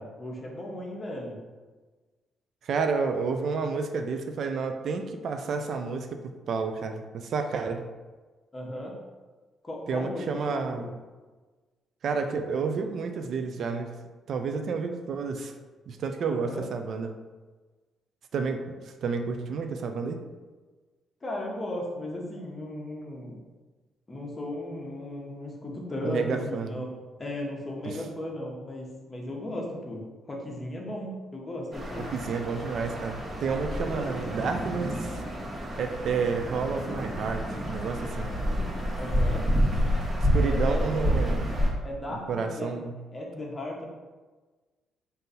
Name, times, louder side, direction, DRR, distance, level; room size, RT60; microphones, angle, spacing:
voice 1, 0.0-1.4 7.7-7.8 8.5-9.0 9.6-10.2 10.5-10.9 16.2-16.6 21.2-23.4 24.1-26.9 27.2-32.1 33.6-34.3 39.0-39.4 40.4-40.9 41.8-42.7 43.1-43.9, left 1 dB, 25° left, -1 dB, 0.9 m, -36 dB
voice 2, 2.6-7.8 9.9-10.9 12.0-13.9 14.3-15.5 15.9-17.1 18.3-20.2 26.0-26.8 27.8-28.0 32.0-35.2 35.8-38.3 40.3-41.6 42.1-42.9, right 5 dB, 65° right, 6 dB, 0.3 m, -30 dB
sound 1, 31.7-41.7, equal, 30° right, 1.2 m, -29 dB
3.7 x 2.6 x 4.0 m, 1.3 s
cardioid pair, 90°, 0 cm